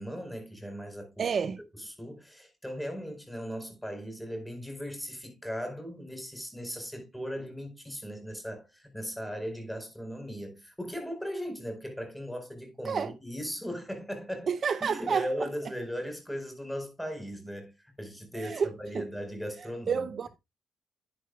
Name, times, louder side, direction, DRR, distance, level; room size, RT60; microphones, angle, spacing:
voice 1, 0.0-14.5 14.8-17.7 18.0-20.1, equal, ahead, 4.5 m, -38 dB
voice 2, 1.2-1.6 12.9-13.1 14.5-15.5 18.3-18.7 18.9-19.0 19.9-20.3, right 6 dB, 50° right, 0.6 m, -29 dB
10.0 x 10.0 x 2.3 m
cardioid pair, 90°, 0 cm